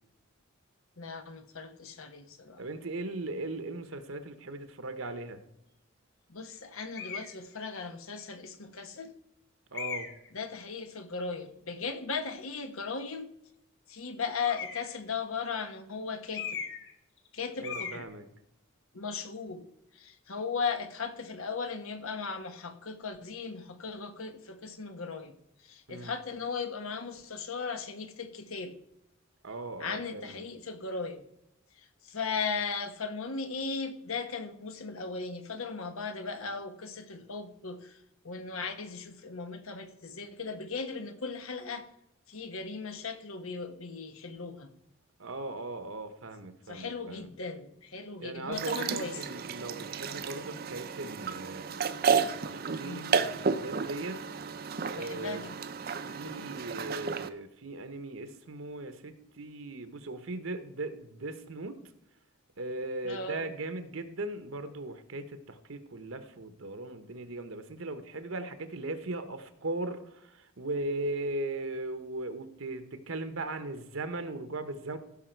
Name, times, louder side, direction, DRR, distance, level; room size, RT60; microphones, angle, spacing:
voice 1, 1.0-2.6 6.3-9.1 10.3-13.3 13.9-16.6 17.3-18.0 18.9-19.7 20.0-25.3 25.6-28.7 29.8-31.2 32.0-38.0 38.2-41.8 42.3-44.7 46.7-49.4 52.8-53.1 55.0-55.5 56.2-56.4 63.0-63.5, left 5 dB, 85° left, 8 dB, 1.2 m, -37 dB
voice 2, 2.6-5.4 9.7-10.1 17.6-18.3 25.9-26.1 29.4-30.4 45.2-47.3 48.2-51.7 52.2-54.3 54.9-55.4 56.0-61.8 62.6-75.0, right 2 dB, 75° right, 9 dB, 1.1 m, -38 dB
sound 1, 6.9-7.3 8.2-8.3 9.7-10.3 14.4-15.0 16.3-16.9 17.2-17.3 17.6-18.0, left 7 dB, 55° left, 1.9 m, -38 dB
sound 2, 48.5-57.3, right 6 dB, 45° right, 0.6 m, -32 dB
15.5 x 5.9 x 4.6 m, 0.81 s
head